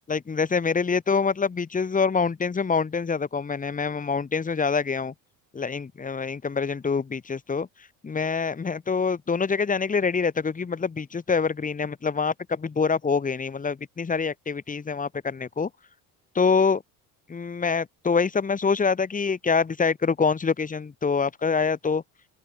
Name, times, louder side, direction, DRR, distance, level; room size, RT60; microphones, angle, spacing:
voice 1, 0.1-5.1 5.5-7.7 8.0-15.7 16.3-16.8 17.3-22.0, left 5 dB, 20° left, 2.4 m, -25 dB
open air
cardioid pair, 115°, 36 cm